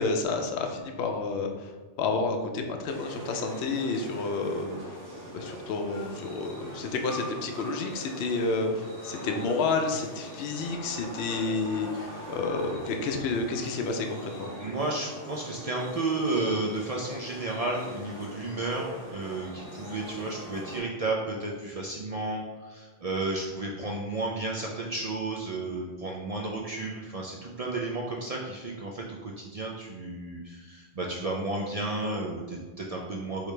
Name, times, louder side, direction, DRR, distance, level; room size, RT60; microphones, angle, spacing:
voice 1, 0.0-1.7 2.0-4.8 5.3-14.5, left 3 dB, 65° left, 4 dB, 0.8 m, -30 dB
sound 1, 2.9-20.8, equal, 50° right, 1.4 m, -41 dB
voice 2, 14.6-33.5, right 2 dB, 70° right, -1 dB, 0.3 m, -32 dB
4.9 x 3.2 x 3.2 m, 1.3 s
omnidirectional pair, 1.2 m